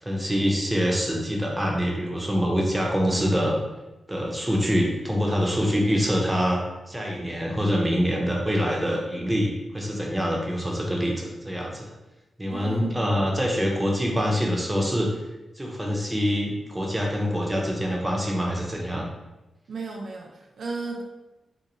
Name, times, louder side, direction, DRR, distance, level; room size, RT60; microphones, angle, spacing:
voice 1, 0.0-3.6 4.1-6.6 6.9-11.9 12.4-15.1 15.6-19.1, equal, 15° right, -1 dB, 0.8 m, -25 dB
voice 2, 12.5-13.3 19.7-21.0, right 3 dB, 75° right, -1 dB, 0.4 m, -34 dB
2.6 x 2.5 x 3.0 m, 1.0 s
cardioid pair, 50°, 0 cm